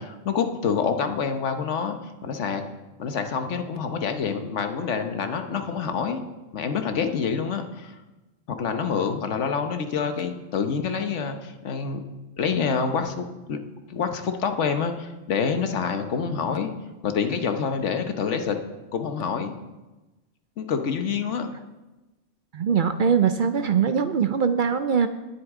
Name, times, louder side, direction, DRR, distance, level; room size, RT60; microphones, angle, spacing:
voice 1, 0.0-2.0 2.2-2.7 3.0-6.2 6.5-8.0 8.5-12.0 12.4-13.6 13.9-16.7 17.0-18.6 18.9-19.5 20.6-21.5, left 6 dB, 80° left, 7 dB, 1.3 m, -27 dB
voice 2, 22.5-25.1, right 7 dB, 60° right, 10 dB, 0.6 m, -22 dB
18.5 x 8.0 x 3.7 m, 1.1 s
omnidirectional pair, 1.2 m